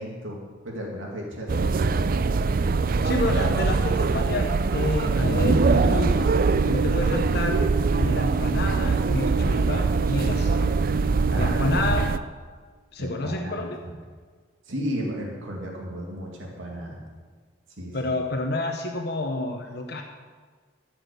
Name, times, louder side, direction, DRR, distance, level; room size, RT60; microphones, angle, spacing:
voice 1, 0.0-2.0 11.3-11.8 13.0-14.0 14.6-17.0 17.8-18.0, equal, 75° right, -2 dB, 2.3 m, -34 dB
sound 1, 1.5-12.2, right 4 dB, 45° right, 0.4 m, -22 dB
voice 2, 3.0-6.3 6.7-7.6 7.9-10.7 11.4-12.0 12.9-13.8 17.9-20.0, left 2 dB, 55° left, 3 dB, 0.9 m, -29 dB
14.0 x 6.0 x 6.7 m, 1.5 s
head